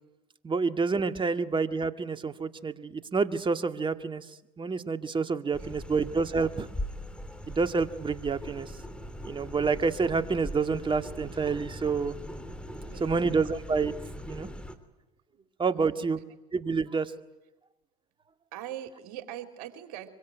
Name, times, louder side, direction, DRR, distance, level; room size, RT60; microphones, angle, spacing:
voice 1, 0.4-4.3 4.6-6.7 7.5-8.7 9.2-12.2 13.0-13.9 14.2-14.5 15.6-16.2 16.5-17.1, right 4 dB, 25° right, 9 dB, 1.9 m, -28 dB
sound 1, 5.5-14.8, equal, 5° left, 3.4 m, -41 dB
voice 2, 5.5-6.0 12.9-13.5 15.3-15.4 15.8-16.1 18.5-20.1, right 11 dB, 75° right, 6 dB, 3.6 m, -43 dB
25.0 x 24.0 x 9.3 m, 1.0 s
hypercardioid pair, 80°, 19 cm